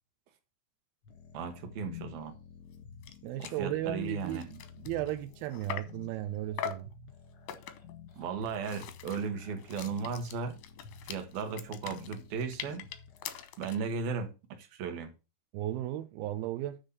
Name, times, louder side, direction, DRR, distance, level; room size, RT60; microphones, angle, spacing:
sound 1, 1.0-13.5, left 7 dB, 60° left, 1.4 m, -51 dB
voice 1, 1.3-2.3 3.4-4.5 8.2-10.6 11.1-12.9 13.6-15.1, right 5 dB, 65° right, 2.7 m, -36 dB
sound 2, 2.7-2.8 3.0-3.2 3.4-3.6 4.1-6.0 6.6-6.9 7.5-8.0 8.4-13.9, left 10 dB, 80° left, 2.0 m, -42 dB
voice 2, 3.2-6.9 15.5-16.8, right 13 dB, 90° right, 2.1 m, -35 dB
10.0 x 3.6 x 6.9 m
omnidirectional pair, 5.3 m